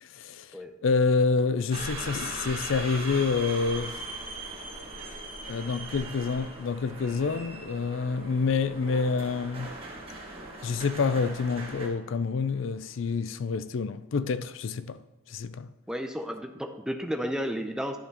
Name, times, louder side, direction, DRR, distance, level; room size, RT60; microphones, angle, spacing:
voice 1, 0.0-4.0 5.5-9.7 10.6-15.7, left 4 dB, 70° left, 0.4 m, -28 dB
sound 1, 1.4-15.1, equal, 30° left, 1.2 m, -56 dB
sound 2, 1.7-11.9, right 2 dB, 30° right, 1.5 m, -39 dB
voice 2, 15.9-18.0, equal, 5° right, 0.5 m, -32 dB
11.0 x 6.8 x 3.0 m
head